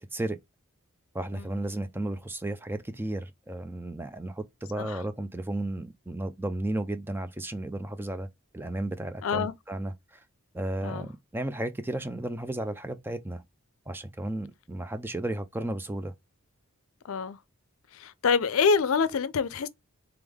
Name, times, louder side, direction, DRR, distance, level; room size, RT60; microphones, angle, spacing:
voice 1, 1.1-8.3 8.5-10.2 10.5-13.4 13.9-16.1, right 1 dB, 10° right, 0.3 m, -33 dB
voice 2, 9.2-9.5 10.8-11.1 17.0-17.4 17.9-19.7, left 5 dB, 75° left, 0.5 m, -26 dB
3.5 x 3.4 x 3.4 m
head